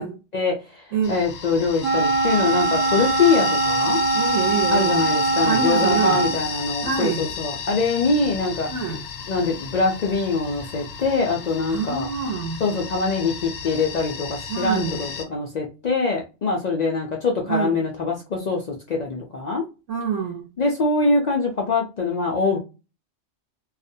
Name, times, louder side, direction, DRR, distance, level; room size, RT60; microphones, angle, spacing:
voice 1, 0.3-4.0 4.7-8.7 9.3-12.1 12.6-19.6 20.6-22.6, left 3 dB, 70° left, 0 dB, 0.4 m, -23 dB
voice 2, 0.9-1.2 4.1-5.0 5.4-6.2 6.8-7.3 8.7-9.0 11.7-12.6 14.5-15.0 17.5-17.8 19.9-20.5, right 6 dB, 80° right, 2 dB, 1.0 m, -26 dB
sound 1, 1.0-15.2, left 6 dB, 90° left, 1.0 m, -33 dB
Wind instrument woodwind instrument, 1.8-6.4, right 3 dB, 55° right, 0.3 m, -22 dB
2.4 x 2.1 x 2.6 m, 0.29 s
omnidirectional pair, 1.3 m